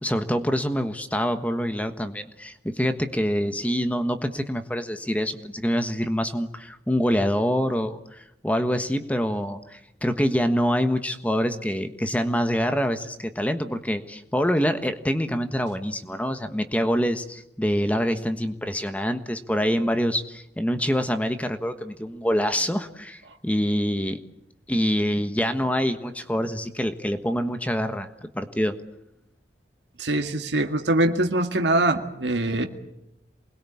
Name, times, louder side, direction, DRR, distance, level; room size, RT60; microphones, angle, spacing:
voice 1, 0.0-24.2 24.7-28.8, equal, 10° left, 8 dB, 1.3 m, -25 dB
voice 2, 30.0-32.7, right 2 dB, 90° right, 5 dB, 2.0 m, -23 dB
28.0 x 21.5 x 8.6 m, 0.85 s
head